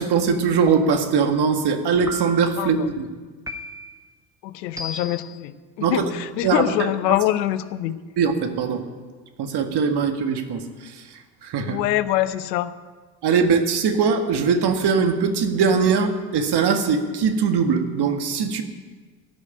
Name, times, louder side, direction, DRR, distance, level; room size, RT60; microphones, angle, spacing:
voice 1, 0.0-3.1 5.8-6.1 6.4-6.9 8.2-8.8 9.4-11.8 13.2-18.6, right 5 dB, 50° right, 6 dB, 1.9 m, -21 dB
sound 1, 0.7-1.2 2.1-2.6 3.5-4.0 4.8-5.3, equal, 5° right, 1.6 m, -35 dB
voice 2, 2.6-2.9 4.4-7.9 11.6-12.7, left 13 dB, 80° left, 14 dB, 0.8 m, -24 dB
15.0 x 6.6 x 10.0 m, 1.4 s
hypercardioid pair, 65°, 49 cm